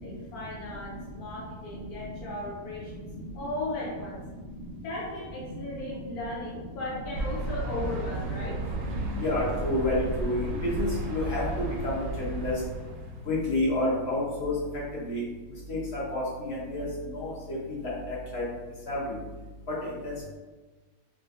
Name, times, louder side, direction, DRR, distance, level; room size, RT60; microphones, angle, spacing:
voice 1, 0.0-3.1 3.3-4.2 4.8-8.9, left 1 dB, 85° left, -5 dB, 1.2 m, -36 dB
sound 1, 7.1-13.3, right 1 dB, 70° right, 0.9 m, -33 dB
voice 2, 9.2-11.4 11.8-12.5 13.3-14.5 15.0-15.2 15.7-16.9 17.1-17.6 17.8-18.4 18.9-19.2 20.0-20.1, left 1 dB, 50° left, -7 dB, 1.1 m, -29 dB
3.7 x 2.5 x 2.5 m, 1.3 s
omnidirectional pair, 1.6 m